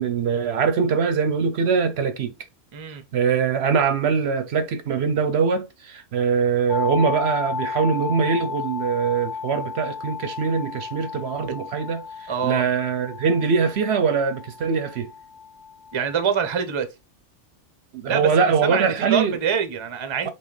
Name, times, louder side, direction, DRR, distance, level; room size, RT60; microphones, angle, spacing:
voice 1, 0.0-2.3 3.1-12.0 12.4-15.1 17.9-19.4, right 6 dB, 65° right, 0.8 m, -22 dB
voice 2, 2.7-3.0 12.3-12.6 15.9-16.9 18.1-20.3, right 7 dB, 35° right, 0.5 m, -25 dB
sound 1, 6.7-16.5, left 6 dB, 55° left, 0.5 m, -33 dB
5.5 x 2.9 x 3.1 m
omnidirectional pair, 1.3 m